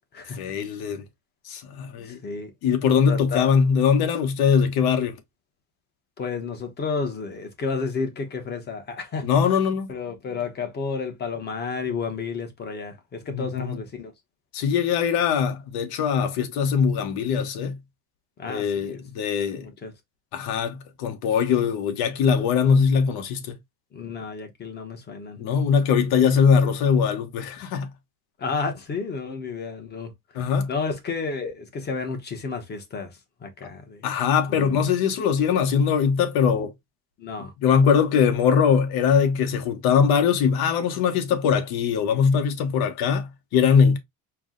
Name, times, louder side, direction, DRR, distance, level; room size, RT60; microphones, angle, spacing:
voice 1, 0.4-1.0 1.5-2.2 2.6-5.1 9.2-9.9 13.3-13.8 14.5-17.8 18.4-19.7 20.3-23.6 25.4-27.9 30.3-30.7 34.0-36.7 37.6-44.0, left 6 dB, 70° left, 1.0 m, -21 dB
voice 2, 1.9-2.5 3.1-3.5 6.2-9.3 9.9-14.1 18.4-19.0 19.5-19.9 23.9-25.4 28.4-34.1 34.5-34.8 37.2-37.5, left 4 dB, 25° left, 0.9 m, -32 dB
4.6 x 2.2 x 3.7 m
cardioid pair, 175°, 39 cm